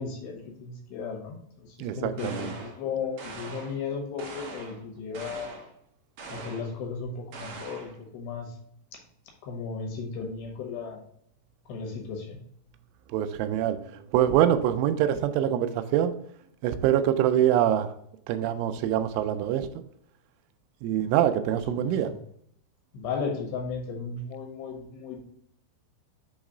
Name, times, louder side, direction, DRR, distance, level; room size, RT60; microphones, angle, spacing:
voice 1, 0.0-5.6 6.3-8.5 9.4-11.0 11.7-12.4 21.8-22.2 22.9-25.2, left 5 dB, 75° left, 1 dB, 2.8 m, -35 dB
voice 2, 1.8-2.5 13.1-16.1 16.6-17.9 18.3-19.7 20.8-22.1, right 11 dB, 85° right, 10 dB, 3.0 m, -24 dB
sound 1, 2.2-2.8 3.2-3.8 4.2-4.8 5.1-5.7 6.2-6.7 7.3-8.0, right 3 dB, 70° right, 2.0 m, -42 dB
7.3 x 3.1 x 4.9 m, 0.69 s
omnidirectional pair, 5.5 m